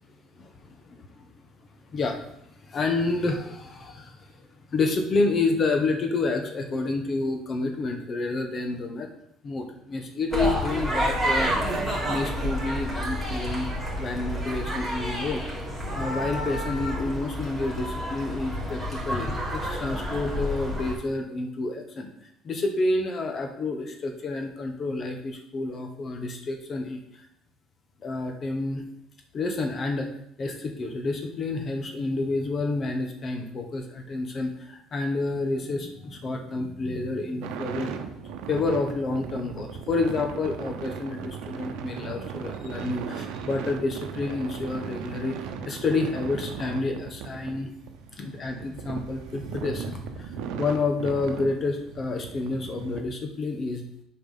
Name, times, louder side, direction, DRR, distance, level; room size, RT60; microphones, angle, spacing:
voice 1, 0.4-1.3 1.9-9.1 9.4-11.5 12.0-13.7 14.0-15.4 15.9-22.1 22.4-27.0 28.0-28.8 29.3-30.1 30.4-37.9 38.5-45.4 45.6-47.7 48.1-53.8, left 3 dB, 40° left, 5 dB, 1.2 m, -29 dB
sound 1, 10.3-20.9, equal, 10° left, 3.4 m, -29 dB
sound 2, 37.4-53.0, right 6 dB, 80° right, 0.9 m, -37 dB
7.3 x 4.6 x 5.7 m, 0.73 s
cardioid pair, 115°, 0 cm